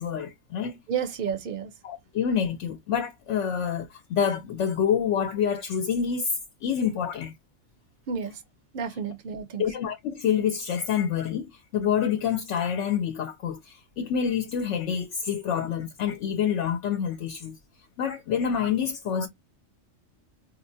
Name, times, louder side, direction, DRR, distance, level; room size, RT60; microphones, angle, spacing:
voice 1, 0.0-0.8 1.8-6.3 6.6-7.3 9.6-17.6 18.0-19.3, left 8 dB, 70° left, 0.9 m, -27 dB
voice 2, 0.9-1.7 8.1-8.4 8.7-9.6, right 7 dB, 50° right, 0.8 m, -31 dB
4.5 x 2.1 x 2.5 m
omnidirectional pair, 1.3 m